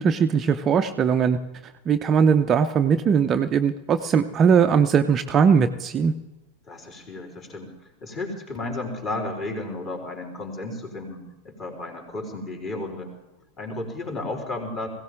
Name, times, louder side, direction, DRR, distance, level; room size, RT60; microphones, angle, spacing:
voice 1, 0.0-6.1, right 6 dB, 25° right, 8 dB, 0.6 m, -20 dB
voice 2, 6.7-7.7 8.0-13.1 13.6-14.9, left 2 dB, 25° left, 0 dB, 4.2 m, -33 dB
20.5 x 16.5 x 3.7 m, 1.0 s
figure-of-eight pair, 90°, 0 cm